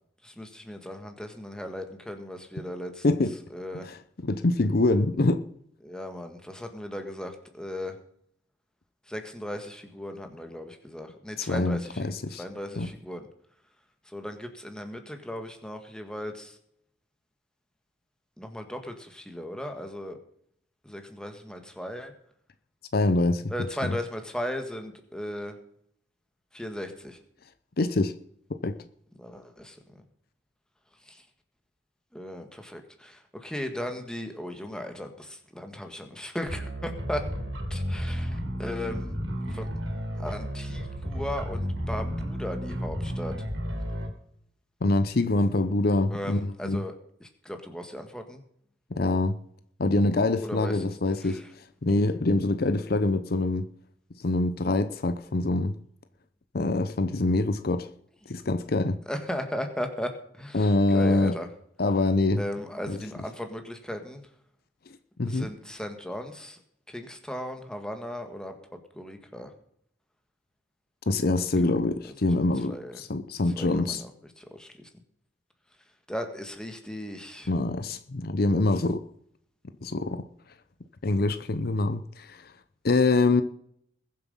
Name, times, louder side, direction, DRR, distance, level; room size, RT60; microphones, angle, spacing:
voice 1, 0.2-3.0 3.5-3.9 5.8-8.0 9.1-12.1 12.4-13.3 14.1-16.6 18.4-20.2 20.8-22.1 23.5-25.6 26.5-27.2 29.2-29.8 31.1-31.2 32.1-37.2 37.7-39.2 39.5-39.7 40.2-43.4 46.1-46.9 47.2-48.4 50.4-50.7 51.2-51.5 59.1-61.5 62.4-64.2 65.2-66.6 66.9-69.5 72.7-73.0 73.6-74.1 74.4-74.7 76.1-77.5, left 1 dB, 5° left, 1.8 m, -37 dB
voice 2, 3.0-3.3 3.8-5.4 11.4-12.4 12.8-12.9 22.9-23.5 23.8-24.0 27.8-28.1 28.5-28.8 44.8-46.8 48.9-49.4 49.8-53.7 54.2-55.7 56.5-57.9 58.3-59.0 60.5-61.4 61.8-62.4 62.9-63.0 65.2-65.5 71.1-74.0 77.5-79.0 79.8-80.2 81.0-82.5 82.8-83.4, left 2 dB, 55° left, 0.7 m, -25 dB
sound 1, 36.5-44.1, equal, 85° right, 3.2 m, -32 dB
21.0 x 7.6 x 5.6 m
head